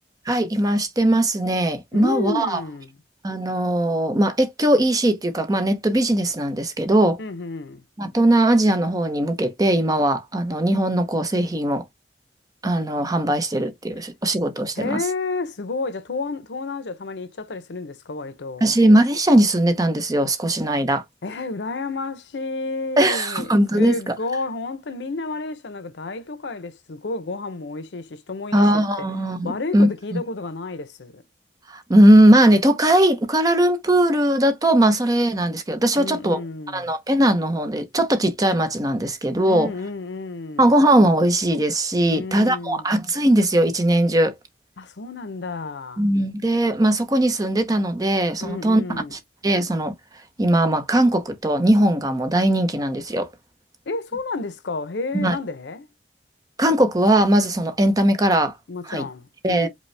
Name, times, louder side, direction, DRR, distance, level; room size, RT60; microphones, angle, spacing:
voice 1, 0.3-2.6 3.2-7.2 8.0-11.8 12.6-15.0 18.6-21.0 23.0-24.1 28.5-30.2 31.7-36.4 36.7-39.7 40.6-44.3 46.0-49.9 50.4-53.3 55.1-55.4 56.6-58.6 58.9-59.0 59.4-59.7, right 1 dB, 20° right, 0.6 m, -19 dB
voice 2, 1.9-3.0 7.2-7.8 14.8-18.7 21.2-29.1 29.4-31.2 36.0-37.0 39.4-40.7 42.1-42.9 44.8-46.1 48.4-49.1 53.9-55.9 58.7-59.7, left 3 dB, 80° left, 0.7 m, -31 dB
5.2 x 2.1 x 3.2 m
head